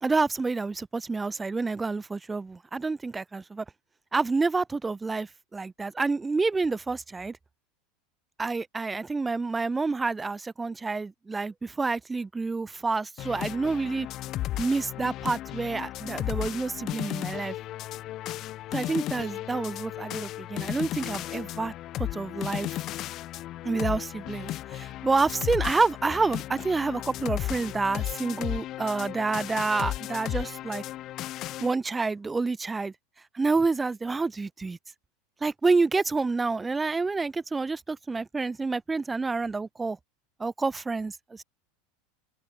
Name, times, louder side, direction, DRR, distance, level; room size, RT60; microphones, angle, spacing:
voice 1, 0.0-3.6 4.1-7.4 8.4-14.1 14.6-17.6 18.7-22.7 23.6-30.8 31.6-32.9 33.3-34.8 35.4-40.0 40.4-41.4, right 3 dB, 15° right, 3.6 m, -28 dB
sound 1, 13.2-31.7, left 14 dB, 45° left, 3.5 m, -35 dB
open air
hypercardioid pair, 100°, 0 cm